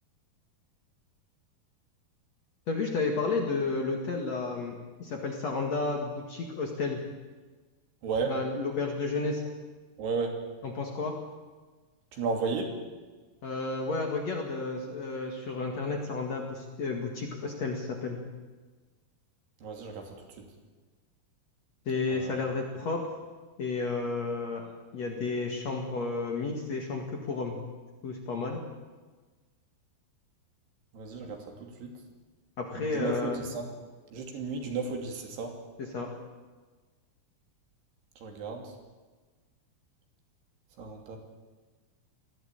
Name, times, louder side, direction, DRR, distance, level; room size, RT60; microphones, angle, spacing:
voice 1, 2.7-7.0 8.3-9.4 10.6-11.1 13.4-18.2 21.9-23.2 23.6-27.6 28.0-28.6 32.6-33.4 35.8-36.1, left 3 dB, 50° left, 2 dB, 2.7 m, -32 dB
voice 2, 10.0-10.4 12.1-12.8 19.6-20.2 22.1-22.4 30.9-31.9 32.8-33.7 34.1-35.5 38.2-38.7 40.8-41.2, right 4 dB, 90° right, 3 dB, 4.8 m, -34 dB
20.5 x 15.5 x 9.0 m, 1.3 s
omnidirectional pair, 4.5 m